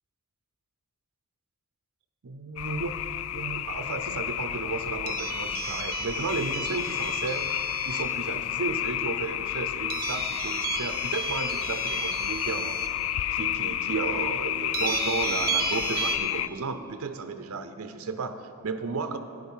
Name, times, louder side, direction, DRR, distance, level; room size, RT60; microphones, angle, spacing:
voice 1, 2.2-3.0 3.3-7.5 7.9-12.8 13.3-19.2, right 4 dB, 80° right, 9 dB, 0.6 m, -33 dB
sound 1, 2.6-16.5, left 12 dB, 65° left, 0.3 m, -30 dB
sound 2, 5.1-8.2 9.9-12.9 13.5-13.6 14.7-16.2, right 7 dB, 45° right, 0.9 m, -34 dB
11.5 x 10.0 x 5.6 m, 2.8 s
head